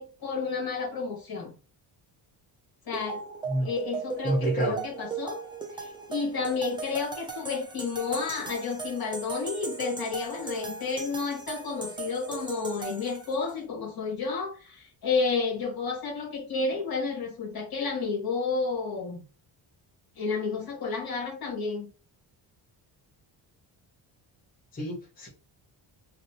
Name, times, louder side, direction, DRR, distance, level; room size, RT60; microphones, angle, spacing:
voice 1, 0.0-1.5 2.9-3.2 3.6-5.4 5.7-19.2 20.2-21.9, left 4 dB, 50° left, 1.6 m, -31 dB
sound 1, 2.9-13.5, right 5 dB, 10° right, 0.4 m, -38 dB
voice 2, 4.2-4.8 24.7-25.3, right 1 dB, 20° left, 0.9 m, -28 dB
3.1 x 2.7 x 2.8 m
cardioid pair, 155°, 46 cm